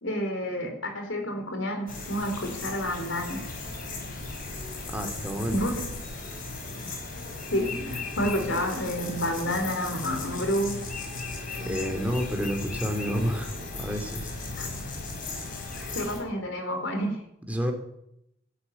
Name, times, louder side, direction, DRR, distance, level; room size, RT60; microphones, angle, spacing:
voice 1, 0.0-3.4 5.5-5.8 7.5-10.8 11.5-11.6 14.6-14.7 15.9-17.2, equal, 80° left, 5 dB, 4.3 m, -29 dB
sound 1, 1.9-16.2, left 3 dB, 45° left, 5.4 m, -36 dB
voice 2, 4.9-5.6 11.6-14.3 17.5-17.7, equal, 10° right, 3 dB, 2.9 m, -29 dB
13.0 x 11.5 x 9.4 m, 0.78 s
head